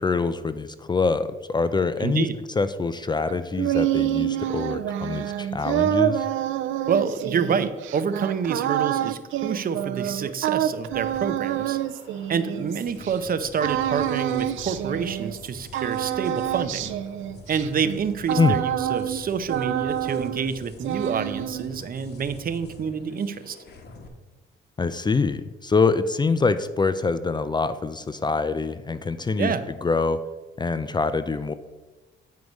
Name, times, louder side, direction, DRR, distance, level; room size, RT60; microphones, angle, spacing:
voice 1, 0.0-2.3 2.6-6.3 18.4-18.6 24.8-29.5 29.8-30.2 30.6-31.5, left 4 dB, 20° left, 12 dB, 0.4 m, -24 dB
voice 2, 2.0-2.4 6.9-11.8 12.3-16.9 17.5-23.6 29.4-29.6, right 6 dB, 45° right, 12 dB, 0.7 m, -28 dB
sound 1, 3.3-13.1 13.6-15.5 15.7-19.2 19.5-20.5 20.8-21.8, right 12 dB, 85° right, 0.5 m, -27 dB
sound 2, 10.8-24.1, left 2 dB, 55° left, 1.3 m, -45 dB
9.4 x 4.7 x 5.3 m, 1.2 s
cardioid pair, 90°, 20 cm